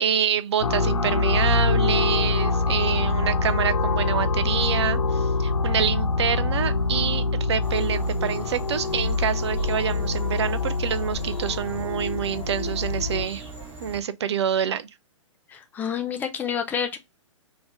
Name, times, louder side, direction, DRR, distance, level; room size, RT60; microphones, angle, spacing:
voice 1, 0.0-13.4 13.8-14.9, right 8 dB, 55° right, 0.5 m, -27 dB
sound 1, 0.6-13.3, left 3 dB, 85° left, 0.5 m, -25 dB
sound 2, 7.6-14.0, right 4 dB, 10° right, 1.1 m, -40 dB
voice 2, 15.5-17.0, left 8 dB, 10° left, 0.5 m, -28 dB
3.0 x 2.7 x 3.3 m
figure-of-eight pair, 115°, 17 cm